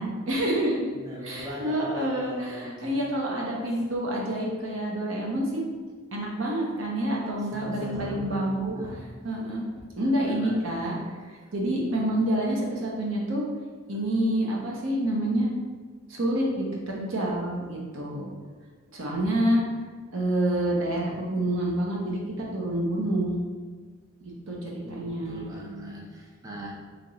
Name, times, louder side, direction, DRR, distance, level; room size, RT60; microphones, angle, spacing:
voice 1, 0.0-0.9 1.2-5.7 6.1-8.8 9.2-9.6 10.0-11.0 11.5-13.4 13.9-15.5 16.1-18.3 18.9-19.6 20.1-23.5 24.2-25.5, right 1 dB, 70° right, -3 dB, 0.9 m, -28 dB
voice 2, 0.9-3.0 7.5-9.0 10.1-10.9 11.7-12.1 24.8-26.7, equal, 15° right, -4 dB, 0.4 m, -40 dB
3.4 x 3.0 x 3.8 m, 1.5 s
head